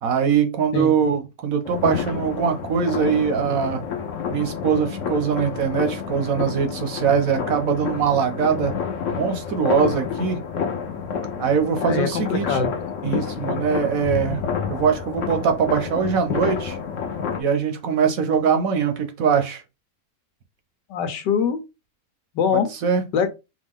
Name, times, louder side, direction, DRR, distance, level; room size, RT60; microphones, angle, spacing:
voice 1, 0.0-3.8 4.3-8.7 9.2-10.4 11.4-12.6 13.0-14.4 14.7-16.8 17.4-19.6 22.5-23.0, right 6 dB, 65° right, 1.0 m, -22 dB
sound 1, 1.7-17.4, left 6 dB, 55° left, 1.0 m, -29 dB
voice 2, 11.8-12.7 20.9-21.6 22.3-22.7 23.1-23.3, left 6 dB, 85° left, 1.4 m, -23 dB
4.8 x 2.5 x 3.5 m
omnidirectional pair, 1.8 m